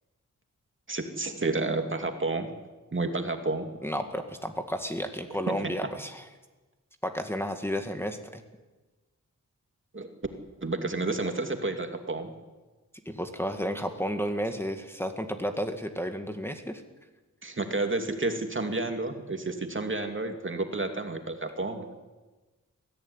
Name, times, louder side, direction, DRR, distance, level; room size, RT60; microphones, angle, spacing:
voice 1, 0.9-2.5 2.9-3.7 5.5-5.7 9.9-10.1 10.6-12.3 17.4-21.9, right 2 dB, 40° right, 5 dB, 2.6 m, -30 dB
voice 2, 3.8-6.2 7.0-8.4 13.1-16.8, equal, 5° left, 6 dB, 1.9 m, -32 dB
21.5 x 15.0 x 9.8 m, 1.2 s
wide cardioid pair, 70°, 32 cm